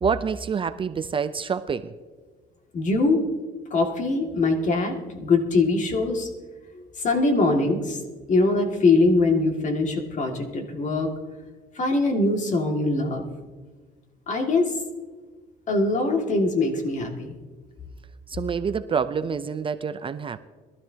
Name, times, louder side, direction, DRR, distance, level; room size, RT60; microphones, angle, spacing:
voice 1, 0.0-1.9 18.3-20.4, right 6 dB, 30° right, 12 dB, 0.5 m, -27 dB
voice 2, 2.7-3.2 3.7-6.3 6.7-8.0 8.3-11.1 11.7-13.3 14.3-14.7 15.7-17.4, left 3 dB, 45° left, 3 dB, 2.1 m, -22 dB
22.0 x 12.5 x 2.8 m, 1.4 s
cardioid pair, 110°, 17 cm